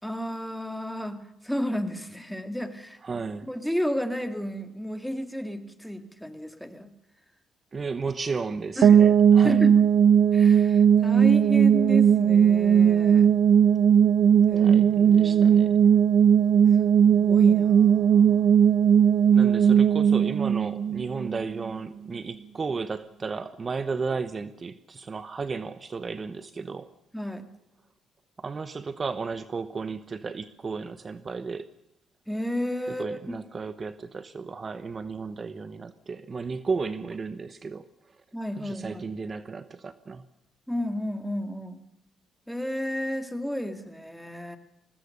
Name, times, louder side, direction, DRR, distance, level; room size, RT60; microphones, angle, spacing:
voice 1, 0.0-3.0 3.5-6.9 8.8-9.0 9.4-9.7 10.3-13.3 14.5-15.7 17.0-18.5 19.6-19.8 27.1-27.5 32.3-33.4 38.3-39.1 40.7-41.8 42.5-44.6, equal, ahead, 8 dB, 2.2 m, -32 dB
voice 2, 3.0-3.5 7.7-9.6 14.6-15.7 19.3-26.9 28.4-31.7 32.9-37.9 38.6-40.2, right 4 dB, 35° right, 13 dB, 0.9 m, -34 dB
sound 1, 8.8-21.7, right 8 dB, 65° right, 0.8 m, -18 dB
21.5 x 18.5 x 6.7 m, 0.87 s
cardioid pair, 90°, 0 cm